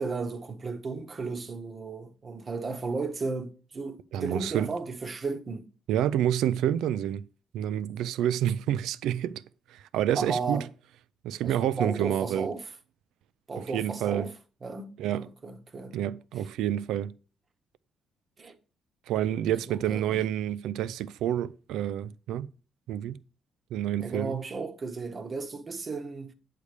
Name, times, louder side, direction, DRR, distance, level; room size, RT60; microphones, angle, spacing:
voice 1, 0.0-5.7 10.1-10.7 11.4-12.6 13.5-14.3 14.6-16.0 18.4-18.6 19.7-20.2 24.0-26.3, right 4 dB, 40° right, 0.9 m, -34 dB
voice 2, 4.1-4.7 5.9-7.2 7.5-9.4 9.7-10.6 11.2-12.5 13.7-14.3 15.0-15.3 15.9-17.1 19.1-22.5 22.9-23.2 23.7-24.4, right 11 dB, 85° right, 0.4 m, -28 dB
8.4 x 3.3 x 6.6 m
cardioid pair, 90°, 0 cm